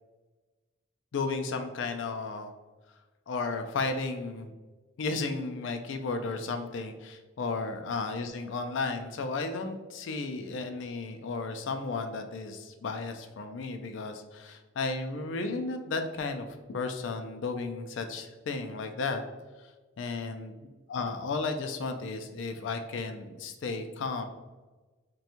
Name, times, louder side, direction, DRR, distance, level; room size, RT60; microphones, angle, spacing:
voice 1, 1.1-2.5 3.3-4.5 5.0-19.2 20.0-20.6 20.9-24.2, left 3 dB, 80° left, 6 dB, 0.4 m, -34 dB
4.3 x 2.2 x 2.5 m, 1.3 s
head